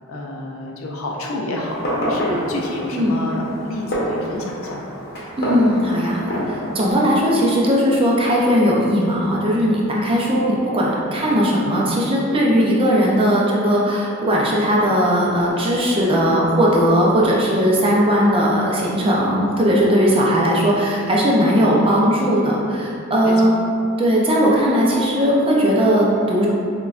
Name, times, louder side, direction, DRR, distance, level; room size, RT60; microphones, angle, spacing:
voice 1, 0.1-4.9 23.2-23.5, left 1 dB, 75° left, -1 dB, 0.6 m, -29 dB
Fireworks, 1.6-6.9, equal, 50° left, 0.9 m, -27 dB
voice 2, 5.4-23.5 24.0-26.5, equal, 25° right, -4 dB, 0.5 m, -18 dB
5.4 x 2.3 x 2.4 m, 2.5 s
head